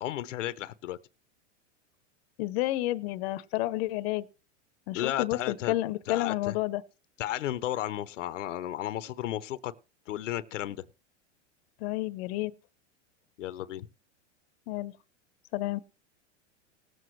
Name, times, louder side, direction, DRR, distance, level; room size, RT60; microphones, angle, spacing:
voice 1, 0.0-1.0 4.9-5.7 6.1-6.6 7.2-9.7 10.1-10.9 13.4-13.9, left 13 dB, 90° left, 0.7 m, -33 dB
voice 2, 2.4-4.2 4.9-6.8 11.8-12.5 14.7-14.9 15.5-15.8, left 17 dB, 55° left, 0.8 m, -30 dB
19.0 x 7.8 x 3.1 m
supercardioid pair, 130°, 36 cm